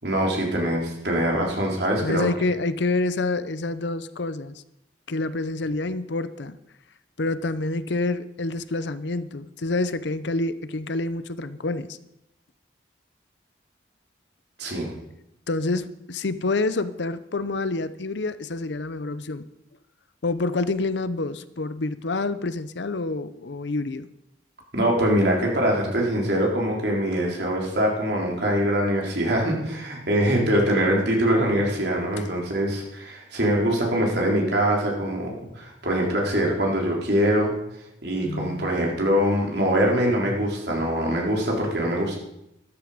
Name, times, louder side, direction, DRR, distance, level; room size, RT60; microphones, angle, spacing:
voice 1, 0.0-2.2 14.6-14.9 24.7-37.5 38.0-42.2, equal, 60° right, -1 dB, 3.8 m, -23 dB
voice 2, 2.0-4.6 5.1-6.6 7.2-12.0 15.5-19.4 20.2-24.1 38.2-38.7, left 2 dB, 70° left, 14 dB, 0.7 m, -27 dB
13.0 x 12.5 x 5.1 m, 0.85 s
head